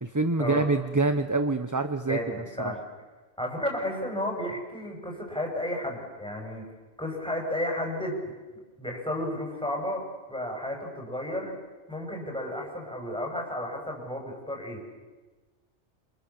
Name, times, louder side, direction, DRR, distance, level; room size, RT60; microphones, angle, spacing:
voice 1, 0.0-2.2 2.6-2.7, right 3 dB, 15° right, 9 dB, 0.9 m, -26 dB
voice 2, 2.0-2.8 3.4-6.7 7.0-8.3 8.8-11.5 11.9-14.8, left 1 dB, 5° left, 0 dB, 6.8 m, -32 dB
28.0 x 27.5 x 7.2 m, 1.3 s
omnidirectional pair, 1.2 m